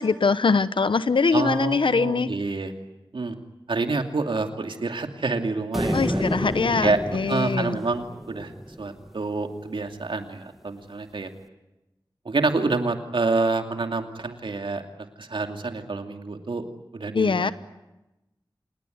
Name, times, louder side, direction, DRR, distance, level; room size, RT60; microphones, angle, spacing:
voice 1, 0.0-2.3 5.9-7.8 17.1-17.5, left 4 dB, 80° left, 14 dB, 0.9 m, -22 dB
voice 2, 1.3-2.7 3.1-3.4 3.7-6.2 6.8-7.0 7.3-8.5 8.8-11.3 12.2-14.8 15.2-16.7 16.9-17.5, right 3 dB, 85° right, 5 dB, 2.5 m, -27 dB
sound 1, 5.7-9.1, equal, ahead, 1.7 m, -30 dB
27.0 x 20.5 x 9.4 m, 1.0 s
wide cardioid pair, 55°, 8 cm